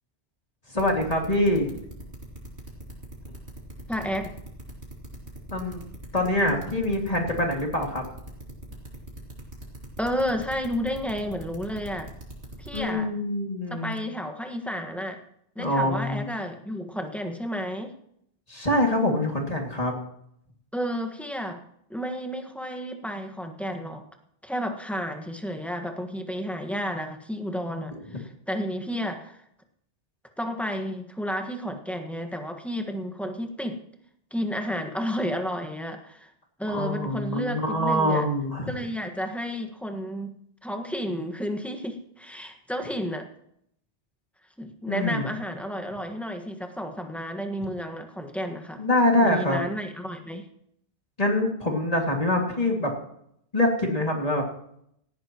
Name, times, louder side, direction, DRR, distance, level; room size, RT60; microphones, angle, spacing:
voice 1, 0.7-1.7 5.5-5.8 6.1-8.0 12.7-13.9 15.6-16.3 18.5-19.9 36.7-38.7 44.9-45.2 48.8-49.6 51.2-52.9 53.5-54.4, left 1 dB, 35° left, 0 dB, 2.5 m, -24 dB
sound 1, 0.8-12.9, right 1 dB, 75° right, 3.5 m, -41 dB
voice 2, 3.9-4.3 10.0-12.1 12.6-13.1 13.7-15.2 15.5-17.9 20.7-21.6 21.9-24.0 24.4-29.4 30.4-33.8 34.3-36.3 36.6-38.3 38.7-40.4 40.6-43.3 44.6-48.8 49.2-50.4, equal, ahead, 4 dB, 1.5 m, -31 dB
18.0 x 14.5 x 3.0 m, 0.72 s
omnidirectional pair, 1.1 m